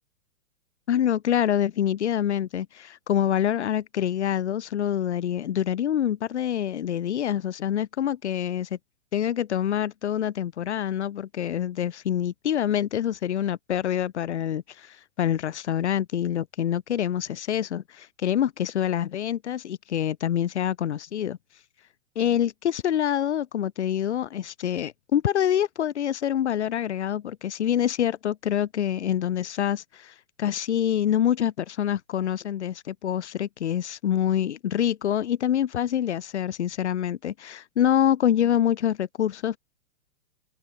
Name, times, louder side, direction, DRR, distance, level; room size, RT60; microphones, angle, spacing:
voice 1, 0.9-8.8 9.1-21.4 22.2-39.6, left 10 dB, 65° left, 7.4 m, -26 dB
open air
hypercardioid pair, 165°, 36 cm